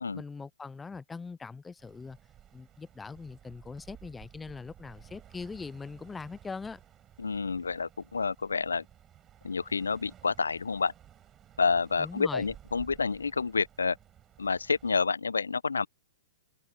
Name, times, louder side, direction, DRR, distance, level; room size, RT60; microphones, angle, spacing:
voice 1, 0.1-2.2 2.5-6.8 12.0-12.5, left 4 dB, 10° left, 0.3 m, -41 dB
sound 1, 1.8-14.9, right 10 dB, 25° right, 4.3 m, -55 dB
voice 2, 7.2-8.8 9.4-10.9 11.6-14.0 14.4-15.9, left 5 dB, 80° left, 0.6 m, -29 dB
figure-of-eight pair, 110°, 0 cm